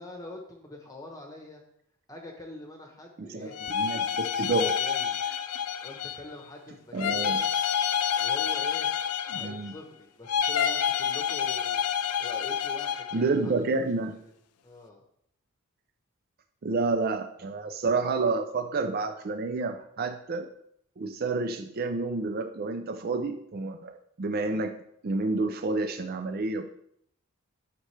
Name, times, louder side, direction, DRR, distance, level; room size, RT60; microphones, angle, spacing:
voice 1, 0.0-1.6 2.1-3.5 4.6-5.2 5.8-7.5 8.2-8.9 9.3-13.7 14.0-14.3 14.6-15.0, left 1 dB, 15° left, 1 dB, 0.9 m, -44 dB
voice 2, 3.2-4.7 6.9-7.4 9.3-9.7 13.1-14.2 16.6-20.5 21.0-24.8 25.0-26.6, right 3 dB, 45° right, 7 dB, 0.4 m, -29 dB
sound 1, 3.5-6.3 7.0-9.8 10.3-13.2, left 8 dB, 85° left, 0.5 m, -28 dB
9.5 x 6.4 x 3.3 m, 0.71 s
head